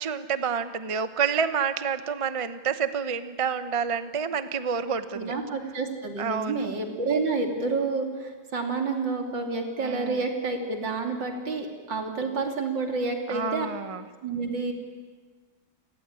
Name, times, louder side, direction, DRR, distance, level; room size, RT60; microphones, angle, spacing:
voice 1, 0.0-5.4 6.2-6.7 9.8-10.3 13.3-14.0, right 6 dB, 35° right, 11 dB, 0.5 m, -29 dB
voice 2, 5.1-13.7 14.2-14.7, right 4 dB, 70° right, 3 dB, 3.6 m, -29 dB
29.5 x 17.5 x 9.8 m, 1.4 s
omnidirectional pair, 2.1 m